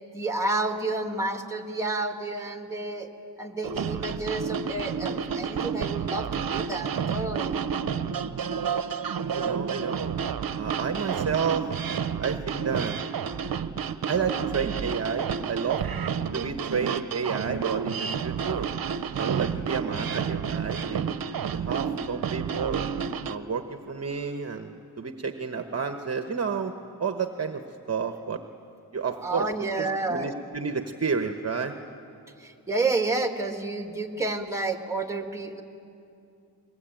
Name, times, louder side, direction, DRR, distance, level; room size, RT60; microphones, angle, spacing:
voice 1, 0.1-3.1 3.4-7.6 29.2-30.3 32.4-35.6, right 2 dB, 5° right, 4 dB, 2.2 m, -30 dB
sound 1, 3.6-23.4, right 7 dB, 60° right, 0.9 m, -30 dB
voice 2, 9.2-10.2 10.5-11.7 12.2-13.0 14.1-15.9 16.3-18.7 19.2-21.2 21.5-22.9 23.2-26.7 27.0-27.6 27.9-28.4 28.9-29.5 29.8-31.8, right 5 dB, 40° right, 7 dB, 1.1 m, -30 dB
23.5 x 22.0 x 9.1 m, 2.6 s
cardioid pair, 85°, 39 cm